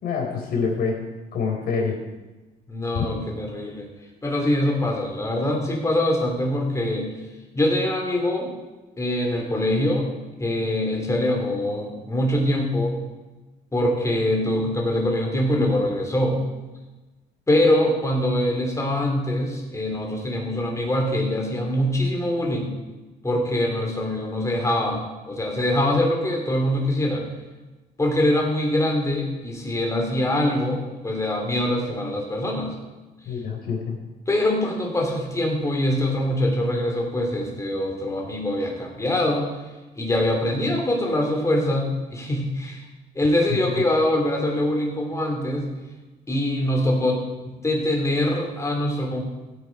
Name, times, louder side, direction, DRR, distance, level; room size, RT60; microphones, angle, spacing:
voice 1, 0.0-1.0 1.3-2.0 2.9-3.1 33.3-34.0 43.6-43.8, left 5 dB, 60° left, 0 dB, 4.0 m, -26 dB
voice 2, 2.7-3.9 4.2-7.1 7.5-8.5 9.0-10.1 10.4-13.0 13.7-16.4 17.5-22.7 23.2-27.2 28.0-32.7 34.3-39.5 39.9-42.8 43.1-45.7 46.3-49.3, left 1 dB, 15° left, 1 dB, 3.2 m, -23 dB
15.5 x 8.8 x 4.8 m, 1.2 s
cardioid pair, 110°, 17 cm